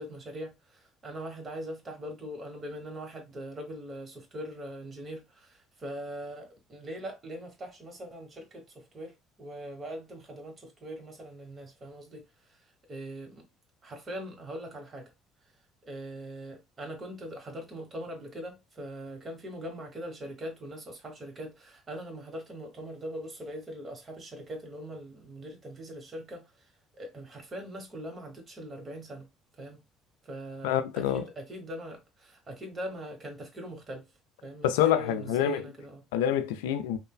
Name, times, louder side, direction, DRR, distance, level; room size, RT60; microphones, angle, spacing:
voice 1, 0.0-13.4 13.8-15.1 15.8-26.7 27.0-29.3 29.6-29.8 30.2-34.1 34.4-36.0, equal, 40° right, 1.2 m, -41 dB
voice 2, 30.6-31.3 34.6-35.7 36.1-37.0, left 10 dB, 85° left, 0.3 m, -26 dB
3.1 x 2.1 x 2.3 m
hypercardioid pair, 65°, 0 cm